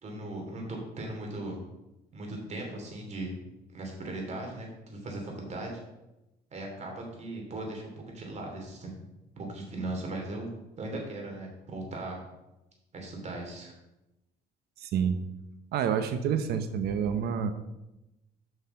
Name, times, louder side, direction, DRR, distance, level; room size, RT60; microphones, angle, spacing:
voice 1, 0.0-1.6 2.1-3.3 3.7-5.7 6.5-7.8 8.1-8.9 9.4-10.5 10.8-12.2 12.9-13.7, right 2 dB, 40° right, 1 dB, 3.1 m, -38 dB
voice 2, 14.8-15.2 15.7-17.5, right 7 dB, 70° right, 9 dB, 0.9 m, -28 dB
8.0 x 5.7 x 5.8 m, 0.94 s
cardioid pair, 110°, 17 cm